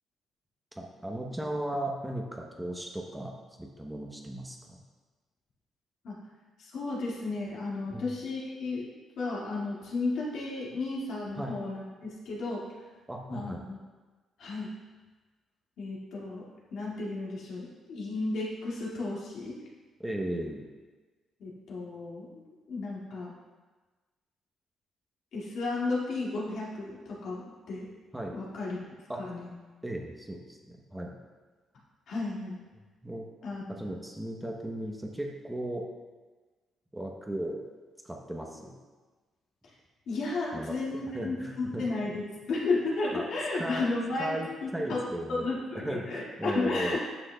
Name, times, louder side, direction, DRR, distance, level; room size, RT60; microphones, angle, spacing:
voice 1, 0.7-3.3 3.6-4.8 7.9-8.2 11.4-11.6 13.1-13.7 20.0-20.7 28.1-28.4 29.1-29.2 29.8-31.2 32.7-33.3 33.7-35.9 36.9-37.6 38.0-38.8 40.5-41.8 43.1-43.3 43.5-43.9 44.2-47.0, right 1 dB, 10° right, 1 dB, 0.9 m, -36 dB
voice 2, 6.6-8.9 9.2-12.7 13.3-13.8 14.4-14.8 15.8-19.6 21.4-23.3 25.3-27.9 28.3-28.8 29.2-29.5 32.1-32.6 33.4-33.8 40.1-42.2 42.5-44.4 44.9-45.0 45.3-47.0, left 3 dB, 70° left, -5 dB, 2.0 m, -33 dB
9.8 x 6.1 x 2.3 m, 1.3 s
cardioid pair, 90°, 0 cm